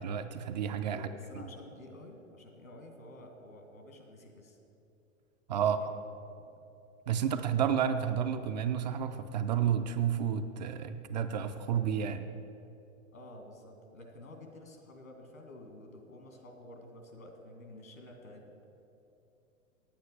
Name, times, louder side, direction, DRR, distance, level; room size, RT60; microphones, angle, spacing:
voice 1, 0.0-1.1 1.3-1.4 5.5-5.8 7.1-12.3, right 8 dB, 35° right, 8 dB, 0.4 m, -31 dB
voice 2, 0.9-4.6 5.5-6.0 6.4-6.5 13.1-18.4, left 1 dB, 75° left, 3 dB, 2.2 m, -51 dB
9.4 x 8.7 x 7.4 m, 2.8 s
figure-of-eight pair, 105°, 41 cm